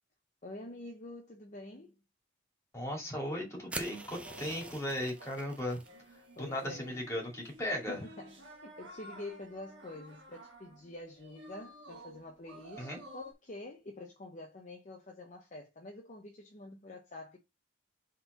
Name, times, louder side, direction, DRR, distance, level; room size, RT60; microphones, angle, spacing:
voice 1, 0.4-2.0 6.4-7.0 7.9-17.4, left 2 dB, 40° left, 0.7 m, -47 dB
voice 2, 2.7-5.8 6.4-8.0 12.8-13.0, left 1 dB, 15° left, 2.3 m, -37 dB
sound 1, 3.6-13.3, equal, 60° right, 1.8 m, -53 dB
sound 2, 3.7-5.9, right 2 dB, 5° right, 0.4 m, -44 dB
4.4 x 3.9 x 5.4 m
head